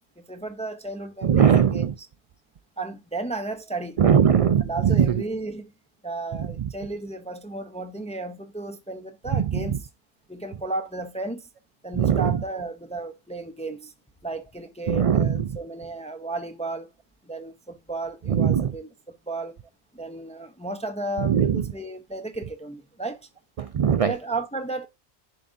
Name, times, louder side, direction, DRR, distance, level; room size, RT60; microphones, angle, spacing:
voice 1, 0.3-2.1 2.8-4.0 4.7-5.7 6.0-9.9 10.3-11.5 11.8-13.9 14.2-16.9 17.2-18.9 19.3-19.5 19.9-23.3 24.0-24.8, right 2 dB, 10° left, 0.4 m, -34 dB
voice 2, 1.2-1.9 4.0-5.1 6.4-6.5 9.3-9.4 11.9-12.4 14.9-15.3 18.3-18.7 21.2-21.6 23.6-24.1, right 8 dB, 65° right, 0.3 m, -20 dB
10.5 x 3.7 x 2.6 m
omnidirectional pair, 1.1 m